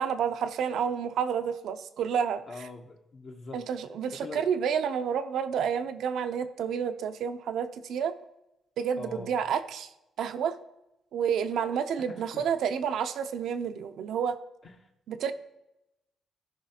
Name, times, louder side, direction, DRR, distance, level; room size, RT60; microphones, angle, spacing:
voice 1, 0.0-2.4 3.5-8.1 8.8-9.9 10.2-10.6 11.1-14.4 15.1-15.3, right 7 dB, 70° right, 9 dB, 0.6 m, -29 dB
voice 2, 2.5-3.6 4.1-4.4 9.0-9.3 12.1-12.4 14.6-14.9, left 3 dB, 45° left, 2 dB, 0.9 m, -43 dB
13.5 x 5.5 x 2.9 m, 0.91 s
cardioid pair, 125°, 0 cm